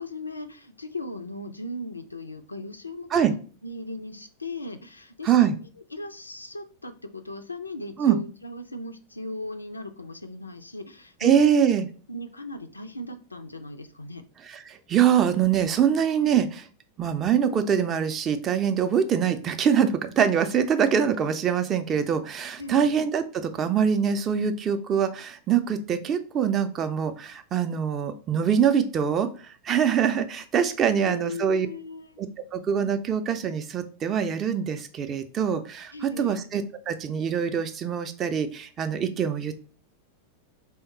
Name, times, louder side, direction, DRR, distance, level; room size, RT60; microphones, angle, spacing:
voice 1, 0.0-3.4 3.6-5.5 5.9-11.3 12.1-14.2 22.6-22.9 30.8-32.1 35.9-36.4, left 2 dB, 80° left, 8 dB, 0.3 m, -38 dB
voice 2, 5.2-5.6 8.0-8.2 11.2-11.9 14.4-16.7 17.0-29.3 29.6-31.7 32.2-32.3 32.5-39.6, right 8 dB, 30° right, 8 dB, 0.4 m, -24 dB
3.5 x 2.1 x 3.9 m, 0.39 s
figure-of-eight pair, 90°, 0 cm